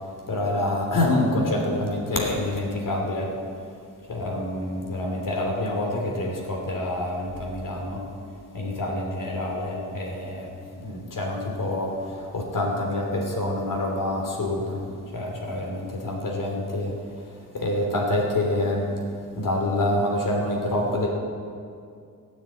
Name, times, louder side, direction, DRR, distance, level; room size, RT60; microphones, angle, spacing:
voice 1, 0.3-3.3 4.1-8.0 8.5-10.5 10.8-14.8 15.1-16.9 17.5-18.9 19.4-21.1, left 1 dB, 60° left, 0 dB, 3.0 m, -26 dB
17.5 x 7.6 x 8.7 m, 2.3 s
wide cardioid pair, 120°, 36 cm